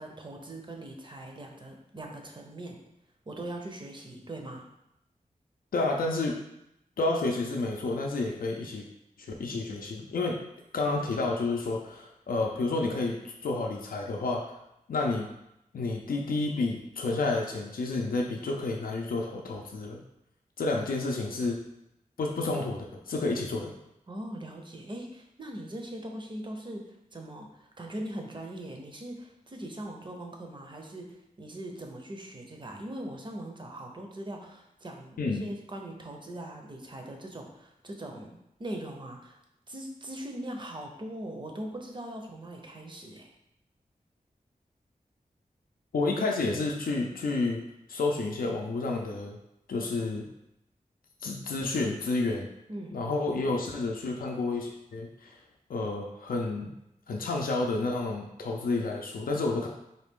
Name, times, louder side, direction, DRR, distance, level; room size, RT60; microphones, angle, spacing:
voice 1, 0.0-2.8 3.3-4.7 24.1-39.4 39.7-43.3 52.7-53.0, right 1 dB, 35° right, 2 dB, 0.6 m, -41 dB
voice 2, 5.7-6.4 7.0-8.9 9.3-10.4 10.7-14.4 14.9-15.3 15.7-20.0 20.6-21.6 22.2-23.7 35.2-35.4 45.9-47.6 47.9-49.4 49.7-50.3 51.2-52.5 52.9-55.4 55.7-56.7 57.1-59.7, left 3 dB, 85° left, 0 dB, 0.4 m, -30 dB
3.9 x 2.4 x 3.5 m, 0.83 s
wide cardioid pair, 95°, 15 cm